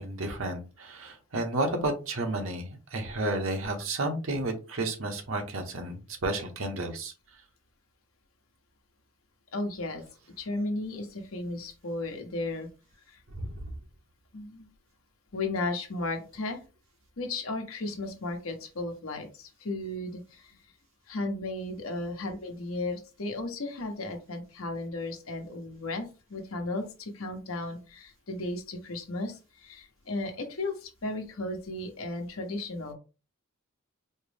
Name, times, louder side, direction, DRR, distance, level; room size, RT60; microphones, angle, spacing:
voice 1, 0.0-7.1 13.3-13.6, right 2 dB, 70° right, 4 dB, 0.9 m, -32 dB
voice 2, 9.5-10.0 10.4-12.7 13.1-13.2 14.3-14.7 15.3-16.6 17.2-20.5 21.1-32.9, left 2 dB, 75° left, 4 dB, 0.9 m, -35 dB
4.3 x 2.0 x 3.3 m, 0.31 s
head